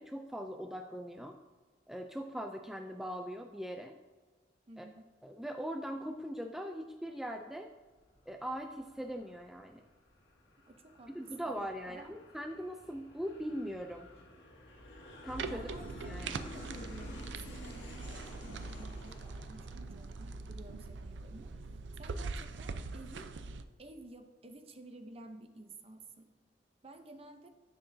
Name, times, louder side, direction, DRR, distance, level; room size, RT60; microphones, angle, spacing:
voice 1, 0.0-1.3 1.9-3.9 4.8-4.9 5.2-7.7 8.3-9.8 11.1-14.1 15.2-15.7 16.1-16.4, equal, ahead, 4 dB, 0.3 m, -40 dB
voice 2, 4.7-5.1 10.7-11.5 11.9-12.2 15.5-21.6 22.0-23.3 23.8-26.3 26.8-27.5, right 2 dB, 35° right, 7 dB, 0.7 m, -52 dB
Aircraft, 7.7-20.9, left 1 dB, 90° left, 1.7 m, -53 dB
sound 1, 15.3-23.6, right 3 dB, 90° right, 0.5 m, -42 dB
10.0 x 7.5 x 2.7 m, 1.4 s
head